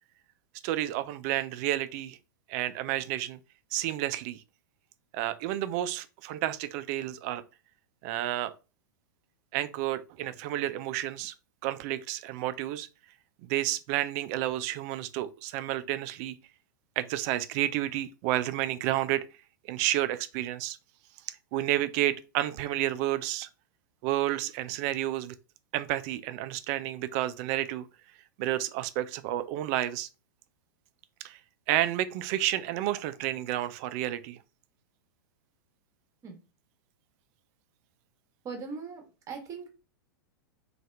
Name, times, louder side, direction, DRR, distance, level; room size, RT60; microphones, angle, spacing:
voice 1, 0.6-2.2 2.5-3.4 3.7-4.4 5.1-7.4 8.0-8.5 9.5-11.3 11.6-12.9 13.5-16.4 17.0-19.2 19.7-20.8 21.5-23.5 24.0-25.4 25.7-27.9 28.4-30.1 31.2-31.4 31.7-34.4, right 14 dB, 45° right, 0.3 m, -30 dB
voice 2, 38.4-39.7, right 5 dB, 25° right, 1.0 m, -40 dB
2.7 x 2.4 x 3.2 m
hypercardioid pair, 105°, 11 cm